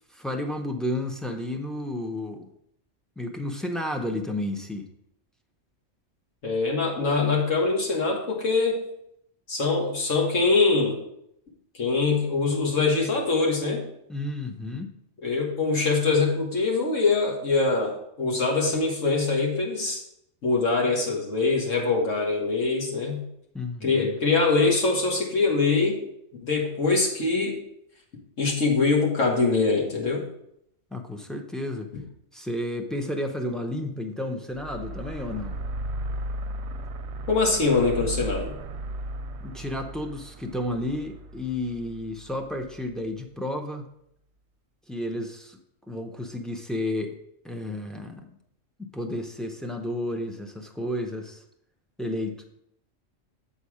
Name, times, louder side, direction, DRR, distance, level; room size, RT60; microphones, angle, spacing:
voice 1, 0.0-2.5 3.2-4.9 14.1-14.9 23.5-24.2 30.9-31.9 32.3-35.5 39.4-43.9 44.9-45.6 45.9-47.2 47.4-48.4 48.8-51.4 52.0-52.4, left 1 dB, ahead, 1 dB, 0.3 m, -32 dB
voice 2, 6.4-8.8 9.5-11.0 11.7-13.8 15.2-20.0 20.4-23.2 23.8-26.0 26.4-27.6 28.4-30.3 37.3-38.6, left 3 dB, 70° left, -1 dB, 2.0 m, -23 dB
sound 1, 34.5-42.9, right 1 dB, 65° right, 0.8 m, -36 dB
7.8 x 4.2 x 4.8 m, 0.74 s
omnidirectional pair, 1.3 m